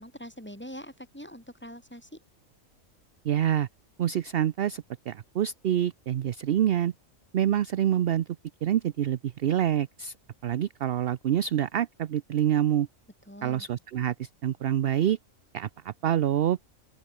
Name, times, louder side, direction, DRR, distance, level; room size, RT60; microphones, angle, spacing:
voice 1, 0.0-2.2 13.3-13.7, equal, 10° left, 6.9 m, -43 dB
voice 2, 3.2-3.7 4.0-6.9 7.3-8.3 8.6-10.1 10.4-12.9 13.4-15.2 15.5-16.6, right 10 dB, 60° right, 0.7 m, -26 dB
open air
omnidirectional pair, 1.3 m